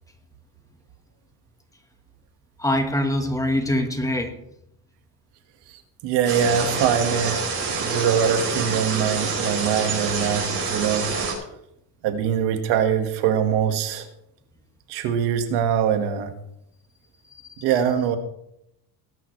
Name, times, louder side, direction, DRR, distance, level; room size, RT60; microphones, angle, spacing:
voice 1, 2.6-4.4 17.3-17.6, left 1 dB, 10° left, 5 dB, 1.4 m, -24 dB
voice 2, 6.0-7.4 7.8-11.1 12.0-14.1 14.9-16.3 17.6-18.2, right 8 dB, 85° right, 6 dB, 1.8 m, -23 dB
sound 1, 6.3-11.3, right 4 dB, 35° right, 5.5 m, -26 dB
19.0 x 11.0 x 3.3 m, 0.79 s
cardioid pair, 150°, 40 cm